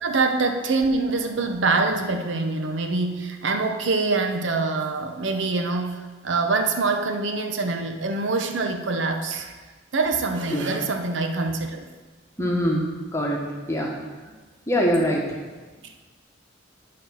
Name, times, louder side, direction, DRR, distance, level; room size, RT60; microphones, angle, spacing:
voice 1, 0.0-9.5 9.9-11.9 15.8-15.9, right 3 dB, 70° right, 5 dB, 0.8 m, -25 dB
voice 2, 12.4-12.8 13.1-13.4 13.7-13.9 14.7-15.4, equal, 15° left, -1 dB, 1.2 m, -23 dB
10.5 x 4.3 x 6.3 m, 1.3 s
head